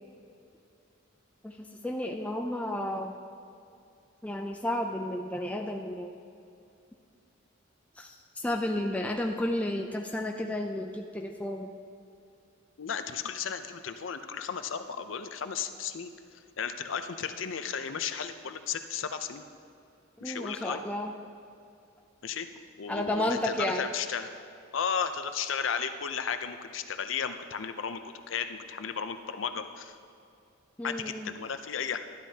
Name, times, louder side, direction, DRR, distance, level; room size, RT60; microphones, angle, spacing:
voice 1, 1.4-3.1 4.2-6.1 8.0-11.7 20.2-21.2 22.9-23.9 30.8-31.4, left 1 dB, 5° left, 2 dB, 0.4 m, -32 dB
voice 2, 12.8-19.4 20.2-20.8 22.2-22.5 22.8-24.3 24.7-30.0 30.8-32.0, left 7 dB, 70° left, 9 dB, 0.6 m, -34 dB
12.0 x 11.5 x 2.8 m, 2.5 s
head